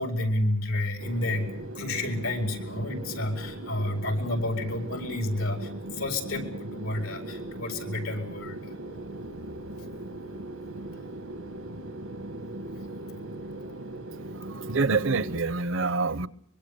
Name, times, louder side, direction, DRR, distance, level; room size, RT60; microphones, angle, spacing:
voice 1, 0.0-1.5 1.7-8.8, left 1 dB, 90° left, 4.9 m, -30 dB
sound 1, 1.0-15.4, right 1 dB, 85° right, 1.5 m, -39 dB
voice 2, 14.5-16.3, right 4 dB, 65° right, 0.9 m, -26 dB
24.5 x 22.5 x 6.9 m
head